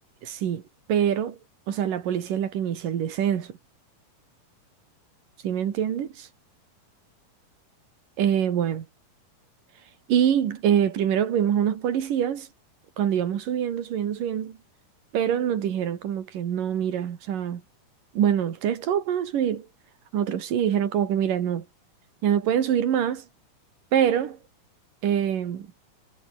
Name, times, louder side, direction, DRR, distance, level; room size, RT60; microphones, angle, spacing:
voice 1, 0.2-0.6 0.9-1.4 1.7-3.5 5.4-6.3 8.2-8.9 10.1-12.5 13.0-14.6 15.1-17.6 18.1-19.7 20.1-21.7 22.2-23.2 23.9-24.4 25.0-25.7, right 9 dB, 70° right, 3.7 m, -25 dB
omnidirectional pair, 4.1 m